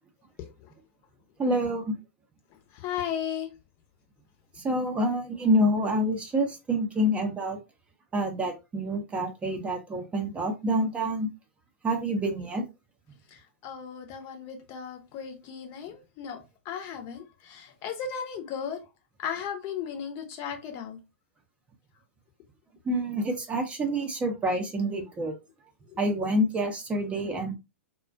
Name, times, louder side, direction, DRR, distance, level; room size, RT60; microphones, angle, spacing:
voice 1, 1.4-1.9 4.6-7.6 8.1-11.3 11.8-12.7 22.9-25.3 26.0-27.5, equal, 15° right, 0.6 m, -27 dB
voice 2, 2.8-3.5 13.6-16.4 16.7-18.8 19.2-21.0, left 8 dB, 40° left, 0.7 m, -35 dB
2.4 x 2.1 x 2.4 m
hypercardioid pair, 110°, 7 cm